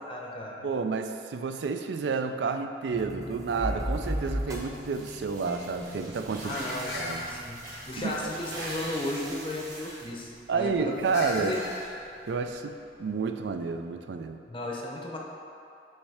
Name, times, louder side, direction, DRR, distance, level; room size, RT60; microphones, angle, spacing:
voice 1, 0.1-0.7 6.4-11.0 11.4-11.6 14.5-15.2, left 1 dB, 30° left, -1 dB, 0.6 m, -35 dB
voice 2, 0.6-6.5 6.9-7.3 8.0-8.3 10.5-11.6 12.3-14.4, right 5 dB, 80° right, 7 dB, 0.4 m, -30 dB
sound 1, 2.9-9.7, equal, 20° right, 0.7 m, -37 dB
sound 2, 3.1-13.7, left 1 dB, 75° left, 0.9 m, -43 dB
sound 3, 3.5-12.5, right 1 dB, 50° right, 1.4 m, -44 dB
7.2 x 3.2 x 4.8 m, 2.5 s
head